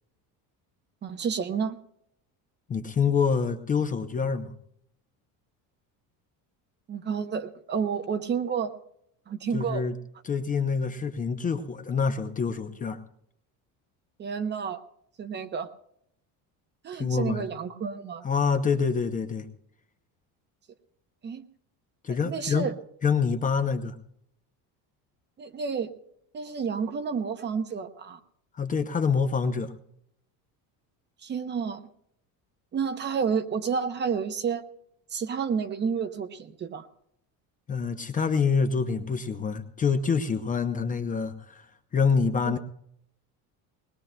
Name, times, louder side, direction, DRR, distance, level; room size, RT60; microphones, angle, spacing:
voice 1, 1.0-1.8 6.9-8.7 9.3-9.8 14.2-14.8 15.2-15.7 16.8-18.2 21.2-21.4 22.1-22.7 25.4-25.9 26.3-28.2 31.2-31.8 32.7-34.6 35.1-36.9 42.4-42.6, right 6 dB, 25° right, 9 dB, 0.7 m, -30 dB
voice 2, 2.7-4.5 9.5-10.0 10.2-13.0 16.9-17.4 18.2-19.5 22.0-22.7 23.0-24.0 28.5-29.7 37.7-41.7 41.9-42.6, left 5 dB, 20° left, 8 dB, 0.6 m, -26 dB
20.5 x 20.5 x 2.2 m, 0.73 s
cardioid pair, 160°, 40 cm